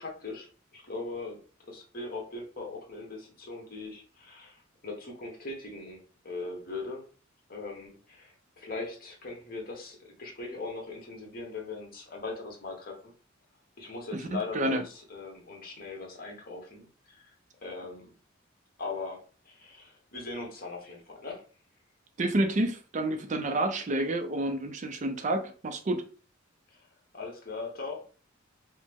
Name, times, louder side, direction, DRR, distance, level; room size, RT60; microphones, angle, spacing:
voice 1, 0.0-1.4 1.7-7.0 7.5-13.1 13.8-17.3 17.6-18.1 18.8-21.4 26.7-26.9 27.1-28.0, left 3 dB, 45° left, 1.3 m, -40 dB
voice 2, 22.2-26.1, right 1 dB, 40° right, 0.4 m, -29 dB
5.1 x 2.1 x 3.4 m
head